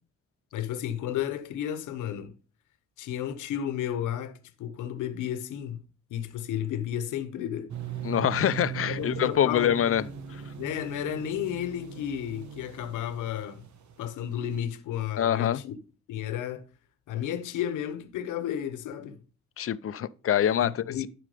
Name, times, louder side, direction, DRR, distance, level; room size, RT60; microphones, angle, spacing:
voice 1, 0.5-2.3 3.0-5.8 6.1-7.7 8.9-9.9 10.6-13.6 14.0-15.8 16.1-16.7 17.1-19.2 20.6-21.1, left 10 dB, 85° left, 1.1 m, -32 dB
sound 1, 7.7-14.6, right 8 dB, 70° right, 1.4 m, -40 dB
voice 2, 8.0-10.0 15.2-15.6 19.6-20.8, left 10 dB, 50° left, 0.6 m, -25 dB
11.5 x 4.9 x 5.0 m
cardioid pair, 90°, 30 cm